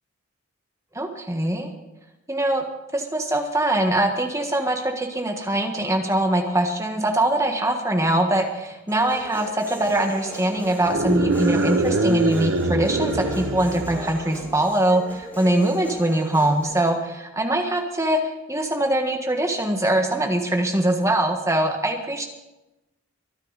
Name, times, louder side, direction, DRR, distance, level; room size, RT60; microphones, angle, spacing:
voice 1, 0.9-1.7 2.3-2.6 2.9-22.3, right 1 dB, 15° right, 3 dB, 1.5 m, -22 dB
Human voice, 8.9-16.9, equal, 10° left, 5.0 m, -38 dB
sound 1, 10.8-14.4, right 2 dB, 65° right, 1.0 m, -24 dB
23.5 x 9.6 x 4.1 m, 0.99 s
head